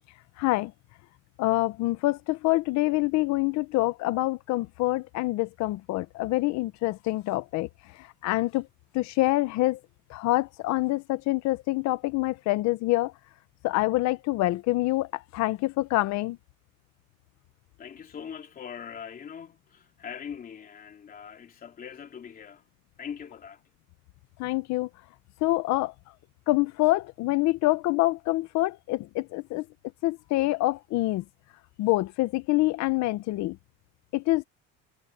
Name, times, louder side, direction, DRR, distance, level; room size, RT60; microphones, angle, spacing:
voice 1, 0.4-0.7 1.4-7.7 8.2-8.7 8.9-9.8 10.1-13.1 13.6-16.4 24.4-24.9 25.4-25.9 26.5-29.6 30.0-31.2 31.8-33.6 34.1-34.4, left 19 dB, 55° left, 0.8 m, -26 dB
voice 2, 17.8-22.7 23.0-23.6, left 7 dB, 25° left, 3.2 m, -41 dB
cardioid pair, 180°, 33 cm